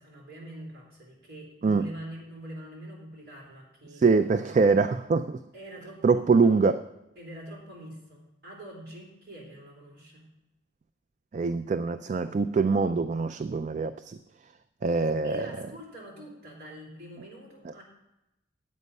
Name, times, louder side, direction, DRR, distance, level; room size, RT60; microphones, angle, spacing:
voice 1, 0.0-4.6 5.5-6.6 7.2-10.3 15.2-17.8, right 1 dB, 55° right, -3 dB, 3.6 m, -45 dB
voice 2, 4.0-5.4 6.0-6.8 11.3-14.2 14.8-15.5, right 4 dB, 40° right, 11 dB, 0.3 m, -24 dB
9.3 x 8.4 x 5.4 m, 0.94 s
head